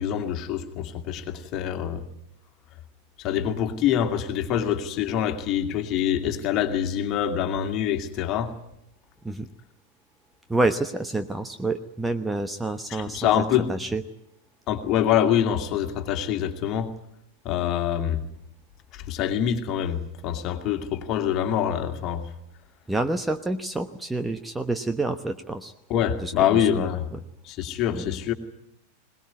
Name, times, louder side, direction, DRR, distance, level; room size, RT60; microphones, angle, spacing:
voice 1, 0.0-2.0 3.2-8.5 12.9-13.7 14.7-16.9 17.4-18.3 18.9-22.2 25.9-27.0 27.4-28.3, left 10 dB, 35° left, 6 dB, 2.4 m, -25 dB
voice 2, 10.5-14.0 22.9-25.7 26.2-27.2 27.9-28.2, right 2 dB, 5° right, 9 dB, 1.0 m, -28 dB
21.5 x 20.0 x 9.6 m, 0.81 s
figure-of-eight pair, 90°, 0 cm